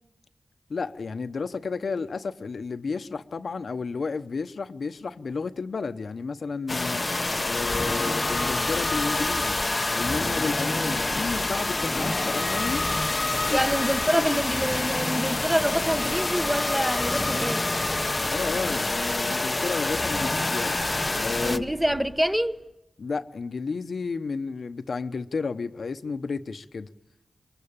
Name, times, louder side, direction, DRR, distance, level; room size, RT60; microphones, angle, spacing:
voice 1, 0.7-7.0 7.4-9.5 9.9-12.8 13.4-13.6 14.1-14.4 18.3-20.8 21.1-21.7 23.0-26.9, left 4 dB, 75° left, 1.0 m, -32 dB
sound 1, 6.7-21.6, left 2 dB, 35° left, 0.8 m, -27 dB
sound 2, 7.1-22.5, left 1 dB, 10° left, 1.5 m, -37 dB
voice 2, 13.5-17.6 21.4-22.6, equal, 10° right, 1.2 m, -26 dB
23.5 x 22.0 x 8.8 m
wide cardioid pair, 65°, 0 cm